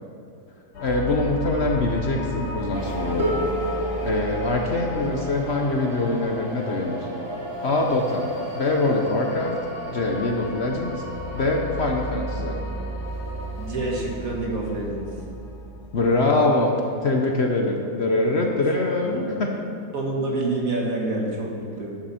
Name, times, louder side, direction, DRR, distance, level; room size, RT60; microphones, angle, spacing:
sound 1, 0.7-16.0, equal, 80° left, 2.1 m, -35 dB
voice 1, 0.8-3.5 4.0-7.1 7.6-8.3 8.5-9.6 9.9-11.0 11.3-12.6 15.9-16.8 17.0-19.5, left 2 dB, 45° left, 1 dB, 1.1 m, -23 dB
sound 2, 2.7-14.0, right 1 dB, 40° right, 1.1 m, -36 dB
Harp, 3.2-9.0 10.0-10.1, left 1 dB, 15° right, 3.3 m, -33 dB
voice 2, 13.5-15.1 19.0-19.3 19.9-22.0, right 2 dB, 60° right, -1 dB, 2.2 m, -27 dB
13.0 x 9.8 x 4.4 m, 2.7 s
omnidirectional pair, 1.7 m